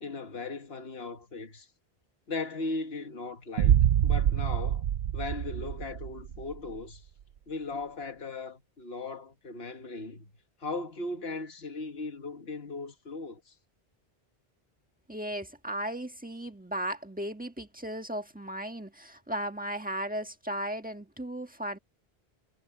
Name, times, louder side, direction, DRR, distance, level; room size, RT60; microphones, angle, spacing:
voice 1, 0.0-1.7 2.3-3.8 4.0-4.9 5.1-7.0 7.5-10.3 10.6-13.6, left 3 dB, 75° left, 1.7 m, -38 dB
Boom, 3.6-6.5, right 10 dB, 90° right, 0.8 m, -26 dB
voice 2, 15.1-21.8, right 1 dB, 10° right, 1.5 m, -36 dB
omnidirectional pair, 1.0 m